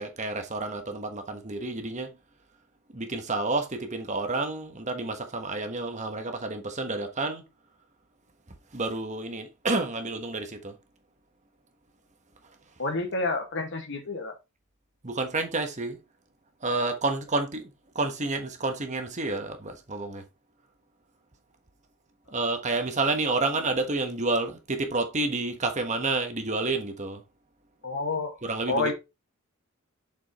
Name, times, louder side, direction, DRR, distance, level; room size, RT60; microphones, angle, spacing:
voice 1, 0.0-2.1 2.9-7.5 8.7-10.8 15.0-16.0 16.6-20.2 22.3-27.2 28.4-28.9, right 3 dB, 35° right, 1.3 m, -29 dB
voice 2, 12.8-14.4 27.8-28.4 28.7-28.9, left 3 dB, 55° left, 1.9 m, -29 dB
7.0 x 5.5 x 3.1 m
head